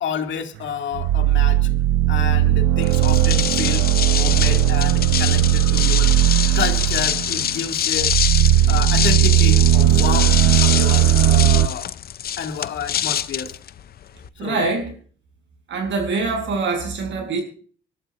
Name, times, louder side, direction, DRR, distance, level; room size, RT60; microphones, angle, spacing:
voice 1, 0.0-1.7 2.1-6.1 6.5-8.1 8.7-10.3 10.6-11.9 12.4-13.6 14.4-14.6, left 7 dB, 70° left, 2.2 m, -29 dB
sound 1, 0.9-11.7, right 12 dB, 90° right, 0.7 m, -17 dB
sound 2, 2.8-14.3, left 10 dB, 50° left, 0.6 m, -25 dB
voice 2, 14.4-15.0 15.7-17.4, right 3 dB, 70° right, 6.2 m, -24 dB
26.0 x 12.5 x 2.5 m
cardioid pair, 90°, 20 cm